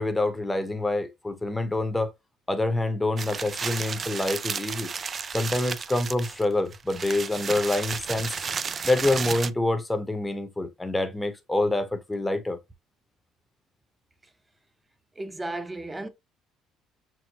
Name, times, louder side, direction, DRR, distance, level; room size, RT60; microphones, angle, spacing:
voice 1, 0.0-2.1 2.5-4.9 5.3-8.4 8.8-12.6, left 2 dB, 10° left, 0.9 m, -26 dB
sound 1, 3.2-9.5, right 6 dB, 35° right, 0.3 m, -33 dB
voice 2, 15.1-16.1, right 2 dB, 15° right, 0.7 m, -34 dB
6.1 x 2.1 x 2.8 m
cardioid pair, 95°, 0 cm